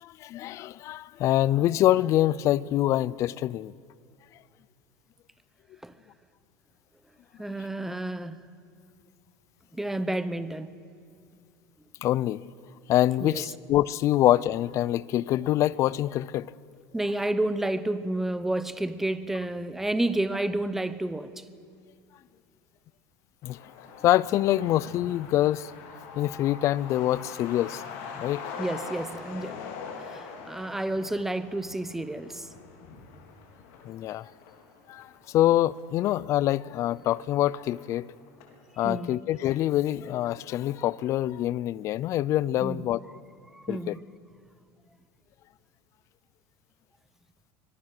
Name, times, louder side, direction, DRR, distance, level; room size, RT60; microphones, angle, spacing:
voice 1, 0.0-3.7 12.0-12.5 12.9-16.5 23.4-23.6 24.0-25.7 26.2-27.8 28.1-28.4 33.8-34.3 34.9-38.1 38.8-43.0 43.7-43.9, left 13 dB, 40° left, 0.5 m, -25 dB
voice 2, 7.4-8.4 9.7-10.7 13.2-13.4 16.9-21.4 28.6-29.6 30.0-32.5 38.8-39.2 42.6-42.8 43.5-44.0, right 1 dB, 5° right, 0.8 m, -30 dB
Truck, 23.4-38.6 38.9-39.0 39.3-40.2 40.4-40.5 40.9-41.3, left 5 dB, 75° left, 4.1 m, -43 dB
24.5 x 20.5 x 6.6 m
cardioid pair, 155°, 8 cm